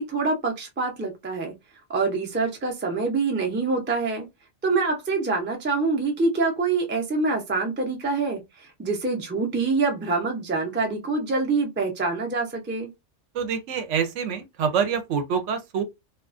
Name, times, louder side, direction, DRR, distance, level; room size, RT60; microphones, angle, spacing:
voice 1, 0.0-1.5 1.9-4.3 4.6-8.4 8.8-12.9, right 3 dB, 15° right, 0.3 m, -25 dB
voice 2, 13.3-15.8, right 7 dB, 75° right, 0.9 m, -26 dB
2.3 x 2.3 x 2.4 m
omnidirectional pair, 1.3 m